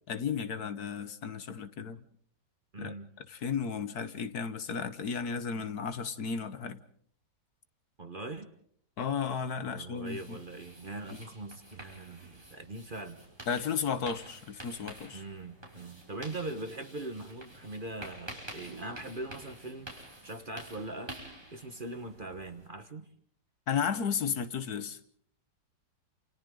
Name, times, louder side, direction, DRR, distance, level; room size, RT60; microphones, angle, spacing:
voice 1, 0.1-2.0 2.8-2.9 3.3-6.8 9.0-10.4 13.5-15.2 23.7-25.0, left 6 dB, 60° left, 1.5 m, -34 dB
voice 2, 2.7-3.1 8.0-8.5 9.7-13.2 15.1-21.1 21.5-23.1, right 2 dB, 30° right, 1.4 m, -41 dB
sound 1, 10.0-22.7, right 1 dB, 15° right, 6.3 m, -49 dB
29.0 x 28.5 x 3.8 m
omnidirectional pair, 1.9 m